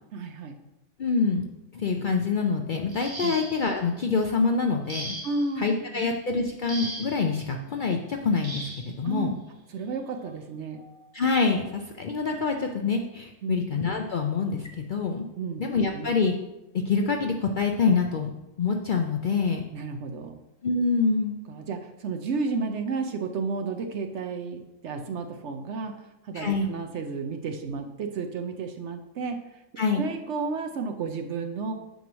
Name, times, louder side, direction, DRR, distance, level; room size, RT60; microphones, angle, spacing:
voice 1, 0.1-0.6 3.2-3.4 5.2-6.0 9.0-9.3 9.7-10.8 13.4-13.6 15.4-16.1 19.7-20.4 21.5-29.6 29.9-31.7, right 4 dB, 65° right, 5 dB, 0.9 m, -32 dB
voice 2, 1.0-1.5 1.7-5.2 5.6-8.7 9.0-9.3 11.1-15.2 15.6-16.4 16.9-18.3 18.6-19.6 20.6-21.4 26.3-26.7 29.8-30.1, left 4 dB, 60° left, 3 dB, 0.5 m, -26 dB
sound 1, 2.9-3.8 4.9-5.5 6.7-7.3 8.4-8.9 10.1-10.2 10.8-11.0, right 2 dB, 25° right, 0.8 m, -37 dB
9.1 x 3.1 x 6.1 m, 0.96 s
omnidirectional pair, 1.4 m